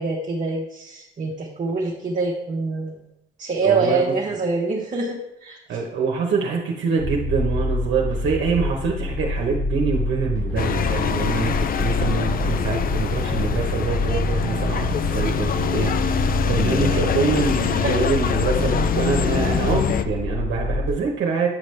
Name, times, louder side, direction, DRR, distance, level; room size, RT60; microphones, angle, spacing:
voice 1, 0.0-3.0 3.4-5.8 16.8-17.2 17.6-18.1, right 3 dB, 40° right, -3 dB, 1.0 m, -25 dB
voice 2, 3.6-4.1 5.7-21.5, right 5 dB, 70° right, -1 dB, 1.0 m, -25 dB
sound 1, 7.0-20.9, left 1 dB, 85° left, 2.7 m, -27 dB
sound 2, 10.6-20.0, left 7 dB, 45° left, 0.5 m, -24 dB
8.7 x 5.0 x 3.3 m, 0.84 s
cardioid pair, 90°, 20 cm